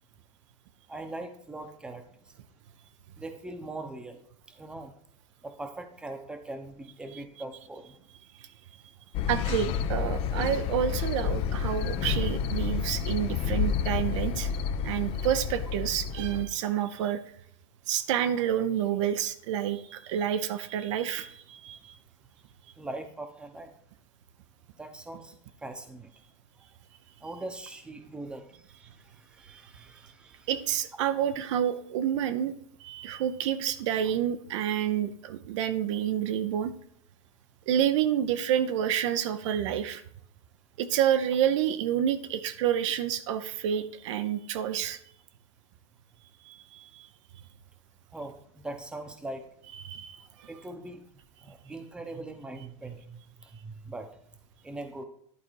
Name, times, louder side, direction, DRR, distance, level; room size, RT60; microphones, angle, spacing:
voice 1, 0.9-2.0 3.2-4.2 4.6-4.9 5.4-8.0 22.8-23.7 24.8-25.3 25.6-26.1 26.6-26.7 27.2-28.6 29.1-30.5 31.1-31.2 48.1-49.5 50.5-51.0 51.4-54.1 54.6-55.0, right 2 dB, 5° right, 6 dB, 0.8 m, -41 dB
sound 1, 9.1-16.4, left 7 dB, 35° left, 0.5 m, -30 dB
voice 2, 9.3-14.5 14.8-17.2 17.9-22.0 29.5-29.6 30.5-32.5 32.8-36.7 37.7-40.0 40.8-45.0 46.5-47.1 49.8-50.5, right 10 dB, 70° right, 11 dB, 0.7 m, -29 dB
11.0 x 4.1 x 4.6 m, 0.67 s
supercardioid pair, 150°, 16 cm